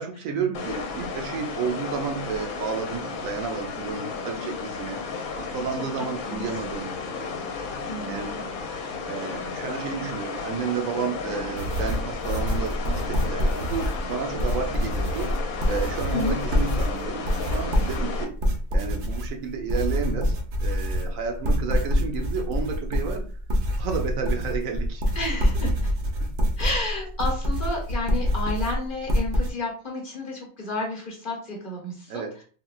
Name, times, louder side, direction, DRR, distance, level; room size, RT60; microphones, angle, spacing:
voice 1, 0.0-5.0 5.3-6.9 8.1-8.4 9.0-15.3 15.6-18.4 18.7-23.3 23.8-25.0 26.2-26.3 32.1-32.3, right 6 dB, 80° right, 3 dB, 1.0 m, -31 dB
sound 1, 0.5-18.2, left 4 dB, 85° left, 1.0 m, -33 dB
voice 2, 4.4-4.7 5.4-6.4 7.8-8.4 16.1-16.4 25.1-25.9 26.6-32.4, left 2 dB, 45° left, -2 dB, 1.0 m, -32 dB
sound 2, 11.6-29.5, equal, 55° right, 0.6 m, -26 dB
3.8 x 2.2 x 2.3 m, 0.42 s
omnidirectional pair, 1.4 m